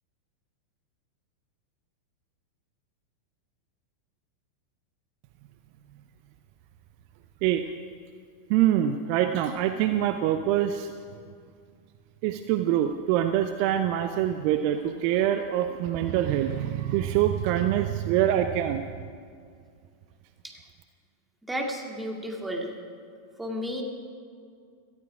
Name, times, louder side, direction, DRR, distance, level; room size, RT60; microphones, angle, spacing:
voice 1, 8.5-10.9 12.2-18.9, right 11 dB, 45° right, 9 dB, 0.6 m, -25 dB
voice 2, 21.5-22.7 23.4-23.8, equal, 5° right, 1 dB, 2.4 m, -32 dB
18.0 x 14.0 x 4.9 m, 2.2 s
figure-of-eight pair, 90°, 0 cm